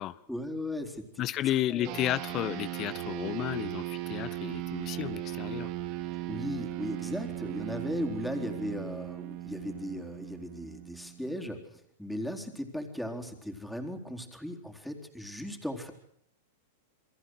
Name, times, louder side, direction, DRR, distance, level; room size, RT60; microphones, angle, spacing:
voice 1, 0.3-1.1 1.5-2.0 6.3-15.9, left 1 dB, ahead, 4 dB, 4.1 m, -37 dB
voice 2, 1.2-5.7, left 13 dB, 40° left, 17 dB, 1.1 m, -32 dB
sound 1, 1.8-11.6, right 15 dB, 50° right, 2.5 m, -38 dB
29.0 x 22.5 x 6.4 m, 0.66 s
hypercardioid pair, 105°, 0 cm